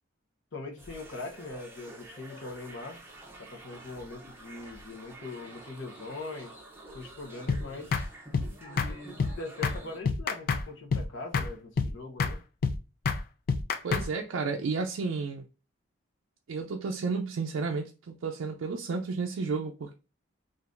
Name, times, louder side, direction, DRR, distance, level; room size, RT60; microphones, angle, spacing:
voice 1, 0.5-3.0 3.4-6.6 6.9-7.9 8.6-12.4, left 3 dB, 65° left, 0.8 m, -41 dB
sound 1, 0.8-10.0, right 1 dB, 10° right, 0.6 m, -49 dB
sound 2, 7.5-7.6 7.9-8.1 8.3-8.5 8.8-8.9 9.2-9.3 9.6-9.8 10.1-10.6 10.9-11.1 11.3-11.5 11.8-11.9 12.2-12.4 12.6-12.8 13.1-13.2 13.5-14.1, left 5 dB, 45° left, 0.3 m, -27 dB
voice 2, 13.8-15.5 16.5-19.9, right 4 dB, 75° right, 0.4 m, -32 dB
3.7 x 2.5 x 2.4 m
head